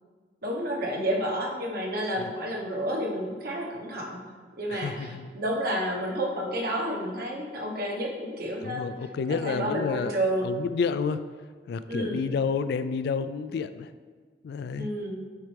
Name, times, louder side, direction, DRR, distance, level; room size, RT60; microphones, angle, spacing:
voice 1, 0.4-4.2 4.6-8.9 9.3-10.6 11.9-12.2 14.8-15.2, right 1 dB, 60° right, -1 dB, 1.1 m, -30 dB
voice 2, 4.7-5.3 8.6-10.1 10.4-11.2 11.7-13.9 14.4-14.9, left 5 dB, 65° left, 12 dB, 0.3 m, -30 dB
8.4 x 4.4 x 3.3 m, 1.5 s
head